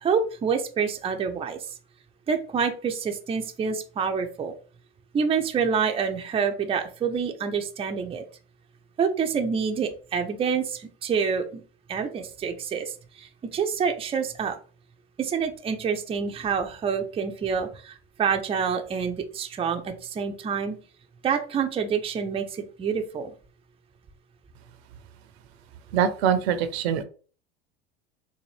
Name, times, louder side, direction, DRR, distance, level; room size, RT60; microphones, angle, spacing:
voice 1, 0.0-1.6 2.3-4.5 5.1-8.2 9.0-11.6 11.9-14.6 15.2-20.8 21.2-23.3, right 6 dB, 20° right, 5 dB, 0.5 m, -27 dB
voice 2, 25.9-27.0, right 8 dB, 75° right, 11 dB, 0.7 m, -23 dB
4.1 x 2.2 x 3.2 m, 0.38 s
hypercardioid pair, 95°, 32 cm